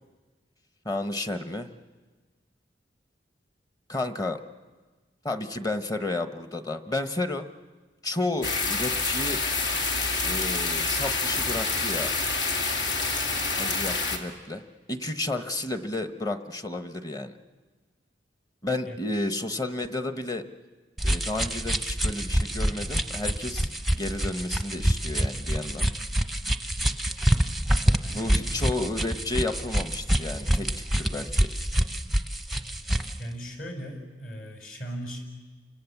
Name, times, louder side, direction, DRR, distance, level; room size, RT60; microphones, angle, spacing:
voice 1, 0.8-1.7 3.9-4.4 5.2-7.5 8.0-9.4 10.2-12.1 13.6-17.4 18.6-20.5 21.0-25.9 28.1-30.7 31.0-31.5, left 2 dB, 20° left, 8 dB, 1.1 m, -32 dB
sound 1, 8.4-14.2, left 3 dB, 75° left, 2.6 m, -27 dB
voice 2, 18.8-19.3 28.0-28.4 33.2-35.2, equal, 55° left, 3 dB, 5.7 m, -38 dB
sound 2, 21.0-33.2, right 1 dB, ahead, 0.7 m, -26 dB
29.0 x 26.0 x 7.2 m, 1.3 s
head